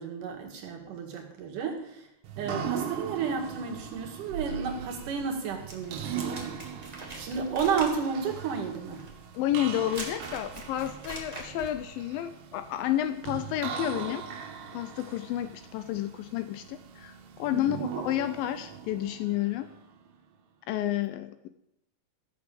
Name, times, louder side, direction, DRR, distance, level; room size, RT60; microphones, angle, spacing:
voice 1, 0.0-2.1 2.4-6.6 7.2-9.1 17.5-17.8, right 6 dB, 55° right, 0 dB, 3.1 m, -32 dB
sound 1, 2.2-20.1, right 7 dB, 85° right, 3.4 m, -40 dB
sound 2, 5.7-11.8, right 2 dB, 40° right, 0.5 m, -43 dB
voice 2, 9.4-14.3 14.7-17.1 17.4-19.7 20.7-21.5, left 12 dB, 90° left, 10 dB, 2.0 m, -30 dB
14.0 x 6.9 x 7.0 m, 0.81 s
omnidirectional pair, 4.8 m